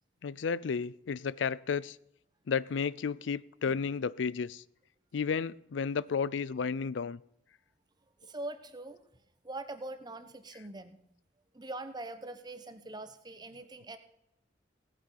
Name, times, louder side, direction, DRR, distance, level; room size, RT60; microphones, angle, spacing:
voice 1, 0.2-2.0 2.5-4.6 5.1-7.2, left 6 dB, 80° left, 0.4 m, -32 dB
voice 2, 8.2-9.0 9.4-11.0 11.5-14.0, right 2 dB, 20° right, 1.0 m, -42 dB
17.0 x 8.8 x 5.7 m
head